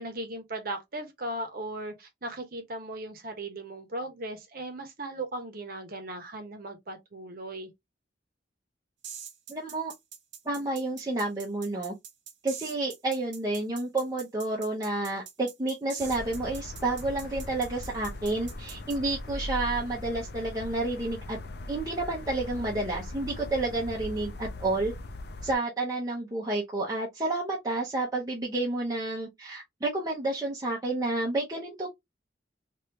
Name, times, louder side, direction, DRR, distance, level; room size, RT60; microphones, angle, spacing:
voice 1, 0.0-7.7, right 1 dB, 55° right, 1.0 m, -37 dB
sound 1, 9.0-19.0, right 8 dB, 90° right, 0.8 m, -44 dB
voice 2, 9.5-9.9 10.4-11.9 12.4-21.4 21.7-24.9 25.4-31.9, right 2 dB, 20° right, 0.8 m, -30 dB
sound 2, 16.0-25.6, left 2 dB, 65° left, 0.5 m, -40 dB
3.2 x 2.6 x 2.8 m
head